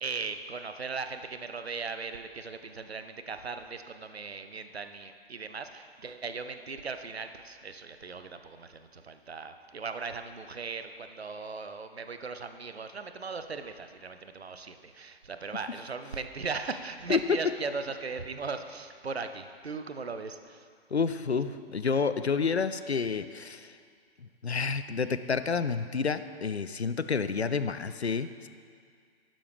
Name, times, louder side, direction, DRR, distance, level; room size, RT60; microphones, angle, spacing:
voice 1, 0.0-20.7, right 4 dB, 75° right, 9 dB, 0.8 m, -38 dB
voice 2, 20.9-23.8 24.4-28.5, left 5 dB, 90° left, 12 dB, 0.5 m, -29 dB
11.5 x 11.5 x 3.4 m, 2.1 s
figure-of-eight pair, 120°, 31 cm